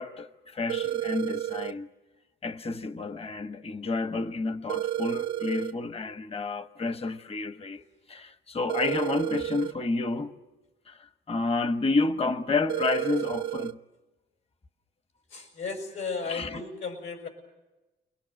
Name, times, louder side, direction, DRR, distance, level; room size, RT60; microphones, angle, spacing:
voice 1, 0.0-1.9 2.4-10.3 10.9-13.8 16.3-16.6, left 3 dB, 30° left, 1.2 m, -30 dB
sound 1, 0.7-1.7 4.7-5.7 8.7-9.7 12.7-13.7, right 12 dB, 75° right, 0.9 m, -31 dB
voice 2, 15.3-17.3, left 4 dB, 75° left, 6.3 m, -35 dB
30.0 x 21.5 x 7.8 m
cardioid pair, 90°, 20 cm